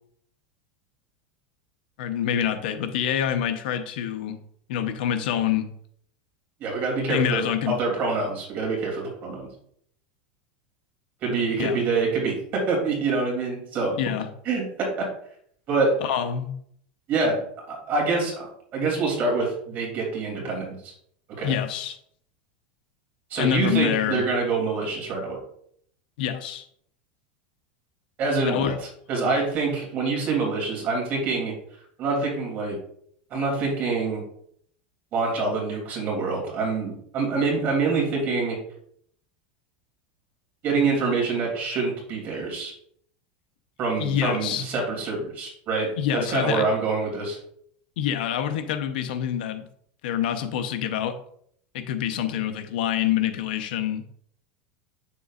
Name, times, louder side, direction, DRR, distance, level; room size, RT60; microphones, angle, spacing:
voice 1, 2.0-4.4 4.7-5.7 7.1-7.8 11.6-11.8 14.0-14.3 16.0-16.5 21.4-22.0 23.4-24.2 26.2-26.7 28.5-28.7 44.0-44.7 46.0-46.7 48.0-49.7 50.0-51.2 51.7-54.1, left 10 dB, 75° left, 8 dB, 0.8 m, -26 dB
voice 2, 6.6-9.5 11.2-14.0 14.4-15.1 15.7-15.9 17.1-17.4 17.7-20.9 21.4-21.5 23.3-25.4 28.2-28.7 29.1-31.5 32.0-32.7 33.3-34.2 35.1-38.6 40.6-42.7 43.8-45.9 46.3-47.4, right 3 dB, 35° right, 0 dB, 2.9 m, -26 dB
7.9 x 6.8 x 2.5 m, 0.67 s
supercardioid pair, 155°, 5 cm